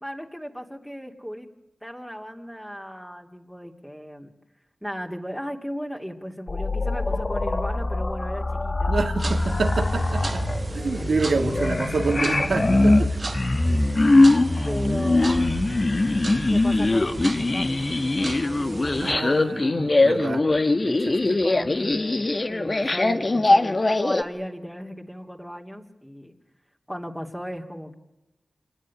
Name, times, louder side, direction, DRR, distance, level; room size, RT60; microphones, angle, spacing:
voice 1, 0.0-1.5 1.8-4.3 4.8-9.0 11.0-11.9 13.7-14.3 14.6-16.2 16.5-19.3 20.3-20.8 21.2-26.4 26.9-27.9, equal, 5° left, 1 dB, 2.9 m, -36 dB
sound 1, 6.5-24.2, left 2 dB, 45° left, 1.8 m, -22 dB
voice 2, 8.9-10.4 10.7-13.1 19.0-20.4 20.8-21.4, right 4 dB, 80° right, 6 dB, 2.5 m, -27 dB
sound 2, 9.2-19.1, right 2 dB, 45° right, 1.1 m, -35 dB
27.0 x 20.0 x 9.9 m, 0.93 s
cardioid pair, 50°, 0 cm